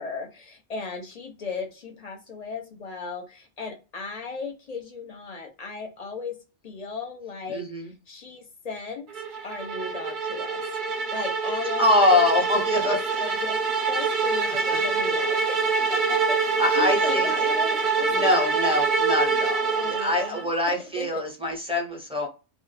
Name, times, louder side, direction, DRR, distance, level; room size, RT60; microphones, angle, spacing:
voice 1, 0.0-6.4 6.6-10.6 11.1-12.2 12.8-13.6 13.9-18.8 19.7-20.5 21.0-21.2, left 4 dB, 45° left, 4 dB, 0.5 m, -36 dB
voice 2, 7.5-7.9 11.8-13.2 14.7-14.8 16.6-17.3 18.1-22.3, left 2 dB, 5° right, -1 dB, 0.5 m, -24 dB
sound 1, 9.1-20.5, right 4 dB, 55° right, 0.6 m, -25 dB
2.2 x 2.0 x 3.1 m, 0.30 s
omnidirectional pair, 1.1 m